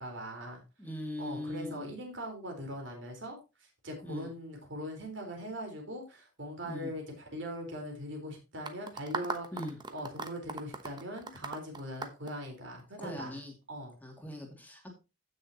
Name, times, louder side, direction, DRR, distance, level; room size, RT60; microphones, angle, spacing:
voice 1, 0.0-0.6 1.2-3.4 3.8-9.5 9.9-13.4 13.7-14.0, equal, 60° right, 2 dB, 4.1 m, -41 dB
voice 2, 0.8-1.9 4.0-4.3 6.6-6.9 9.5-9.8 13.0-13.5 14.0-14.9, left 1 dB, 10° left, 1 dB, 2.4 m, -40 dB
sound 1, 8.7-13.1, right 3 dB, 20° right, 1.0 m, -39 dB
15.5 x 6.5 x 2.9 m, 0.28 s
head